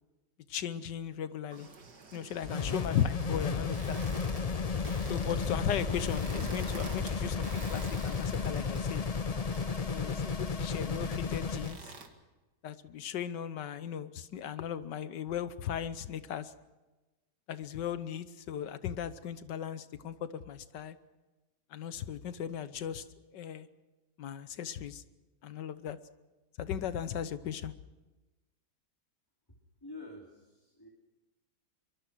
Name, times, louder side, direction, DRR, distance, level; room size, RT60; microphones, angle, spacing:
voice 1, 0.5-1.7 2.1-4.0 5.0-9.0 9.9-11.8 12.6-16.5 17.5-21.0 21.7-23.0 23.3-23.7 24.2-25.0 25.4-26.0 26.6-27.7, left 9 dB, 90° left, 13 dB, 1.6 m, -37 dB
sound 1, 1.5-12.1, right 4 dB, 75° right, 2.6 m, -49 dB
sound 2, 2.4-11.8, left 5 dB, 65° left, 0.3 m, -33 dB
voice 2, 29.8-30.9, left 2 dB, 10° left, -1 dB, 2.9 m, -47 dB
24.0 x 23.5 x 6.2 m, 1.1 s
omnidirectional pair, 1.8 m